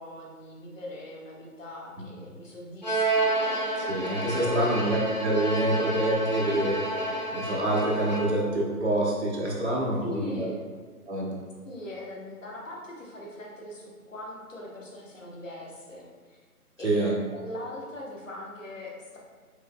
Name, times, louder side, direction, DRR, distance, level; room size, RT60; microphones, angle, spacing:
voice 1, 0.0-3.9 4.4-4.6 10.0-10.6 11.6-16.4 16.8-19.2, equal, 55° left, -3 dB, 1.1 m, -40 dB
Bowed string instrument, 2.8-8.5, right 2 dB, 30° left, 0.6 m, -30 dB
voice 2, 3.9-6.9 7.3-10.5 11.0-11.4 16.8-17.2, right 1 dB, 45° right, -4 dB, 0.9 m, -26 dB
5.1 x 4.0 x 2.2 m, 1.5 s
figure-of-eight pair, 160°, 46 cm